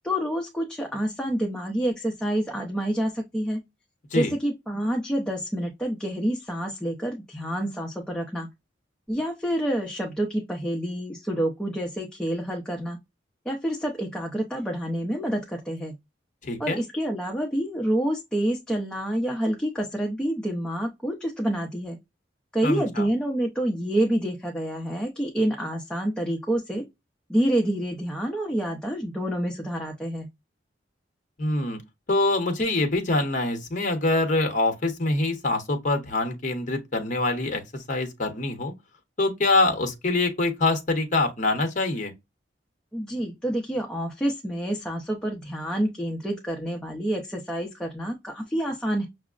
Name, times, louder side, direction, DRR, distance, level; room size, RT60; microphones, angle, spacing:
voice 1, 0.0-3.6 4.1-8.5 9.1-13.0 13.5-15.9 16.6-22.0 22.5-26.8 27.3-30.3 42.9-49.1, right 1 dB, 5° left, 0.5 m, -28 dB
voice 2, 16.4-16.8 22.6-23.1 31.4-31.8 32.1-37.6 37.9-38.7 39.2-42.1, left 2 dB, 45° left, 0.8 m, -24 dB
6.0 x 2.0 x 2.3 m
head